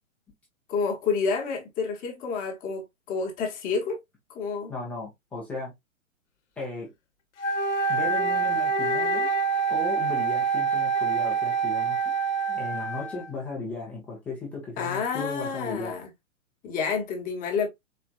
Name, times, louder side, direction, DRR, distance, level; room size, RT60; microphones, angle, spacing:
voice 1, 0.7-4.0 4.3-4.7 14.8-16.1 16.6-17.7, left 5 dB, 20° left, 1.0 m, -29 dB
voice 2, 4.7-5.7 6.6-6.9 7.9-9.3 9.7-12.1 12.5-15.9, left 3 dB, 5° left, 0.4 m, -36 dB
Wind instrument woodwind instrument, 7.4-13.3, right 5 dB, 60° left, 0.9 m, -26 dB
4.1 x 3.2 x 2.3 m
figure-of-eight pair, 120°, 40 cm